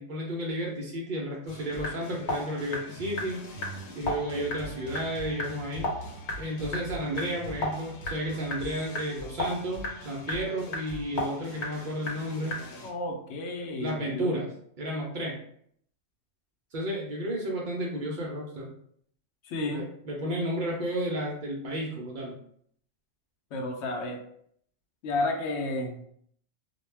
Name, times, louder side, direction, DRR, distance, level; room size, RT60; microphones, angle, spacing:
voice 1, 0.0-3.4 4.0-5.9 6.4-12.6 13.8-14.5 14.8-15.4 16.7-18.7 19.6-22.4, equal, 80° right, -2 dB, 0.4 m, -32 dB
sound 1, 1.5-12.9, left 1 dB, 85° left, 1.1 m, -36 dB
voice 2, 12.8-14.4 19.4-19.9 23.5-24.2 25.0-26.0, left 2 dB, 65° left, 2 dB, 0.8 m, -32 dB
2.2 x 2.1 x 3.2 m, 0.66 s
omnidirectional pair, 1.4 m